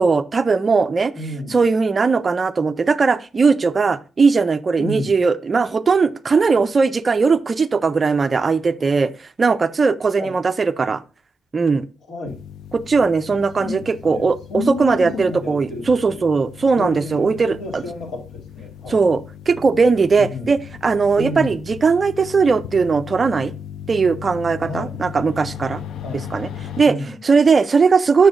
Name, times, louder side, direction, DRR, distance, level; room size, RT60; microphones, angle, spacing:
voice 1, 0.0-1.1 1.5-9.1 9.4-11.0 11.5-11.9 12.7-17.8 18.9-23.5 23.9-25.8 26.3-26.5 26.8-27.0 27.2-28.3, right 4 dB, 25° right, 12 dB, 0.4 m, -18 dB
voice 2, 1.1-1.6 4.8-5.2 10.2-10.3 12.1-12.4 13.3-16.2 16.7-19.1 20.2-20.5 21.2-21.6 24.6-25.0 26.0-26.3 26.8-27.2, left 2 dB, 90° left, -1 dB, 2.4 m, -31 dB
sound 1, 12.2-26.8, left 9 dB, 70° left, 0.4 m, -37 dB
7.9 x 6.9 x 2.5 m, 0.34 s
cardioid pair, 160°, 0 cm